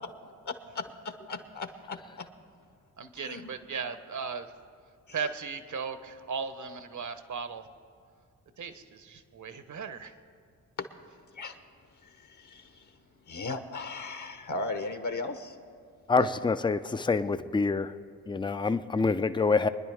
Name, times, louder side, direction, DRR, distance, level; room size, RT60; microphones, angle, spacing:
voice 1, 0.7-2.3 3.2-3.4 5.1-5.2 11.3-11.6 12.0-15.6 16.2-16.3, left 3 dB, 50° left, 8 dB, 1.1 m, -37 dB
voice 2, 3.0-4.5 5.1-7.6 8.6-10.1, right 5 dB, 50° right, 11 dB, 1.0 m, -37 dB
voice 3, 16.1-17.9 18.3-19.7, left 4 dB, 10° left, 12 dB, 0.5 m, -26 dB
24.0 x 10.5 x 3.5 m, 2.4 s
supercardioid pair, 45°, 39 cm